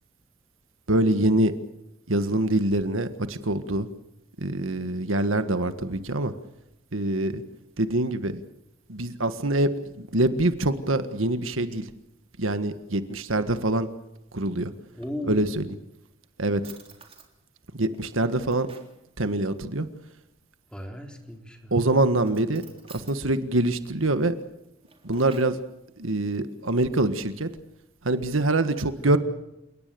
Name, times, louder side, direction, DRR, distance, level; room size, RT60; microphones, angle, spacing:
voice 1, 0.9-1.5 2.1-3.9 4.4-6.3 6.9-7.4 7.8-8.4 8.9-9.7 9.9-11.9 12.4-13.9 14.3-14.7 15.3-15.6 16.4-16.6 17.7-18.7 19.2-19.9 21.7-22.6 22.9-24.3 25.0-25.6 26.0-27.5 28.0-29.2, right 2 dB, 85° right, 10 dB, 1.7 m, -24 dB
Drawer open or close, 14.7-15.7 16.2-16.3 16.6-17.3 17.9-19.0 20.9-21.4 22.2-23.2 24.6-25.6, right 5 dB, 30° right, 3.8 m, -51 dB
voice 2, 14.9-15.5 20.7-21.8 29.0-29.2, left 1 dB, 5° left, 3 dB, 3.9 m, -36 dB
30.0 x 18.5 x 7.0 m, 0.88 s
head